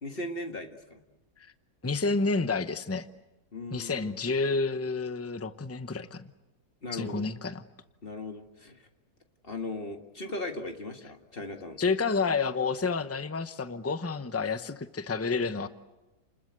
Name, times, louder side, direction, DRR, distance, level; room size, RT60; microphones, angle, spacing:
voice 1, 0.0-1.0 3.5-4.2 6.8-7.3 8.0-8.8 9.4-11.8, left 2 dB, 35° left, 5 dB, 1.9 m, -38 dB
voice 2, 1.8-3.1 3.7-6.2 6.9-7.6 11.8-15.7, left 4 dB, 15° left, 11 dB, 0.6 m, -29 dB
30.0 x 20.5 x 8.0 m, 1.0 s
omnidirectional pair, 1.7 m